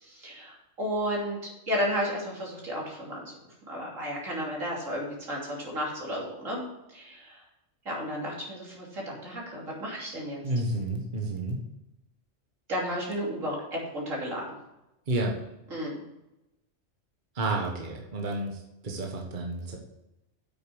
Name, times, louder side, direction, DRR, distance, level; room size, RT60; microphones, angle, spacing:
voice 1, 0.0-3.2 3.7-6.6 6.9-7.4 7.8-10.4 12.7-14.4 15.7-15.9, equal, 85° right, -3 dB, 3.4 m, -33 dB
voice 2, 10.4-11.6 15.1-15.4 17.3-19.8, right 2 dB, 40° right, 0 dB, 1.5 m, -30 dB
8.4 x 6.7 x 6.3 m, 0.93 s
omnidirectional pair, 1.3 m